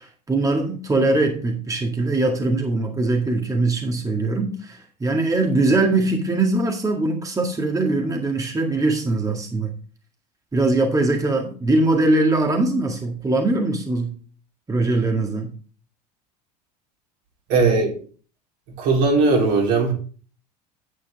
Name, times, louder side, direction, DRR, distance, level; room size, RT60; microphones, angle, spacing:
voice 1, 0.0-9.7 10.5-14.1 14.7-15.5, right 2 dB, 15° right, 2 dB, 1.9 m, -21 dB
voice 2, 17.5-17.9 18.8-19.9, right 3 dB, 60° right, 0 dB, 3.7 m, -18 dB
10.0 x 8.3 x 3.5 m, 0.40 s
hypercardioid pair, 75°, 21 cm